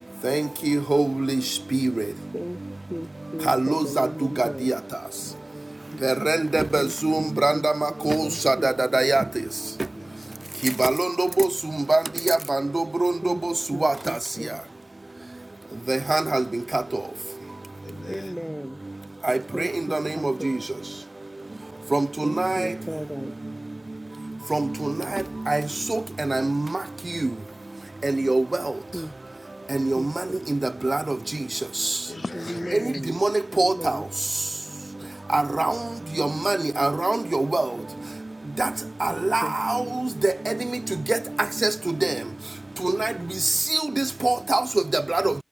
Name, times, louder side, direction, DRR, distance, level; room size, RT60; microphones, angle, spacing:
voice 1, 0.2-1.4 1.7-2.0 3.5-4.1 4.4-4.7 6.0-9.2 10.6-11.5 11.9-13.5 13.8-13.9 15.9-16.4 16.7-16.8 19.2-20.6 21.9-22.7 24.5-25.6 25.9-26.6 27.2-27.3 28.0-28.4 29.7-30.1 30.5-30.6 30.8-31.2 33.2-33.3 33.6-34.0 35.3-35.8 36.2-37.7 38.6-38.7 39.0-40.5 41.1-41.2 41.6-41.7 42.0-42.2 42.8-43.1 43.7-44.6 44.9-45.3, right 2 dB, 60° right, 0.8 m, -23 dB
voice 2, 2.9-4.7 5.5-5.6 5.9-6.0 6.8-8.8 13.2-13.4 13.7-14.6 18.1-18.8 19.5-20.6 22.2-23.4 28.9-29.1 29.9-30.4 32.3-33.2 33.5-34.0 39.1-39.5 43.1-43.6, equal, 5° right, 3.7 m, -35 dB
voice 3, 5.9-6.5 9.9-10.7 13.9-14.0 14.4-14.7 17.8-18.5 32.1-33.0 35.0-35.5, left 3 dB, 90° left, 0.9 m, -41 dB
wide cardioid pair, 45°, 0 cm